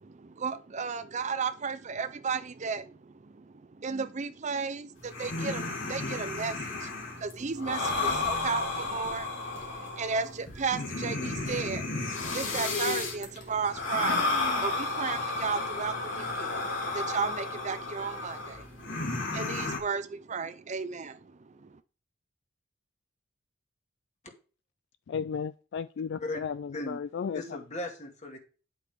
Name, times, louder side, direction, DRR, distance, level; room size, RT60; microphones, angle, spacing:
voice 1, 0.0-21.7, right 5 dB, 35° right, 0.5 m, -35 dB
sound 1, 4.9-19.8, left 3 dB, 75° left, 3.3 m, -33 dB
voice 2, 25.1-26.5 26.9-27.4, left 6 dB, 60° left, 0.3 m, -34 dB
voice 3, 27.3-28.4, left 2 dB, 35° left, 2.2 m, -37 dB
9.7 x 8.1 x 3.7 m
head